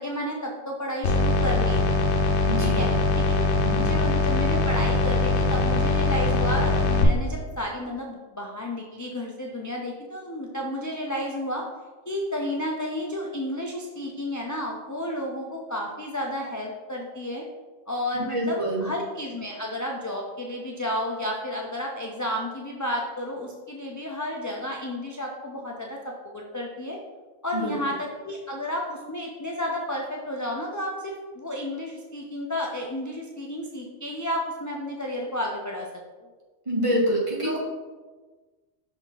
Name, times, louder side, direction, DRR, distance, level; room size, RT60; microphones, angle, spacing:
voice 1, 0.0-2.1 2.6-2.9 3.3-3.4 3.7-11.6 12.1-17.4 17.9-18.6 18.8-27.0 27.4-35.9 36.2-36.3 37.4-37.6, left 1 dB, 25° left, -1 dB, 0.4 m, -32 dB
sound 1, 1.0-7.0, left 3 dB, 85° left, 1.0 m, -22 dB
voice 2, 2.5-3.0 3.6-4.0 18.1-18.9 27.5-27.8 36.6-37.6, equal, 30° right, -4 dB, 1.4 m, -27 dB
5.7 x 4.4 x 4.0 m, 1.3 s
omnidirectional pair, 1.1 m